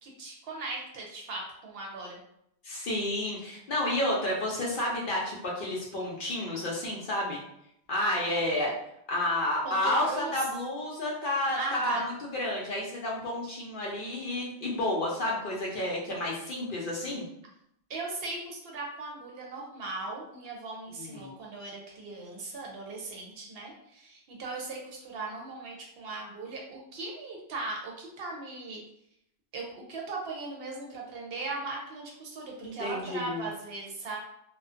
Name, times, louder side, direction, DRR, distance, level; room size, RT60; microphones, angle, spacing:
voice 1, 0.0-2.2 9.6-10.3 11.5-12.1 13.4-13.5 17.9-28.8 29.5-34.2, right 3 dB, 65° right, -1 dB, 0.7 m, -38 dB
voice 2, 2.6-7.4 7.9-8.7 9.1-17.3 21.0-21.3 32.6-33.5, left 1 dB, 60° left, -3 dB, 0.6 m, -30 dB
2.5 x 2.1 x 2.4 m, 0.77 s
omnidirectional pair, 1.2 m